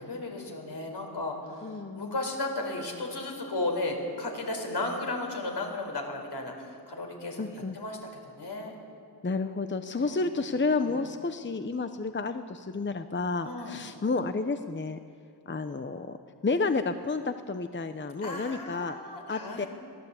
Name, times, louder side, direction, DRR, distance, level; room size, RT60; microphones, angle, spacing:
voice 1, 0.0-8.7 10.0-11.0 13.4-13.8 18.2-19.7, left 2 dB, 70° left, 2 dB, 4.5 m, -35 dB
voice 2, 1.6-2.2 7.4-7.8 9.2-15.0 15.5-16.2 16.4-19.0 19.3-19.7, left 3 dB, 30° left, 9 dB, 0.8 m, -31 dB
23.0 x 16.5 x 8.3 m, 2.3 s
wide cardioid pair, 85°, 41 cm